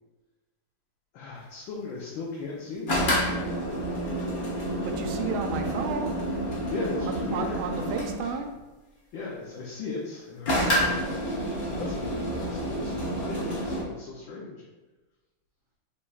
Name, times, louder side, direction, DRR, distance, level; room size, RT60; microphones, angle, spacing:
voice 1, 1.1-3.2 6.7-7.6 9.1-11.0 11.7-14.6, left 3 dB, 75° left, -4 dB, 1.4 m, -37 dB
sound 1, 2.9-8.3 10.5-13.8, equal, 50° left, 0.6 m, -29 dB
voice 2, 4.8-6.3 7.1-8.5, right 5 dB, 80° right, 5 dB, 1.3 m, -32 dB
5.1 x 4.1 x 2.4 m, 1.2 s
omnidirectional pair, 2.3 m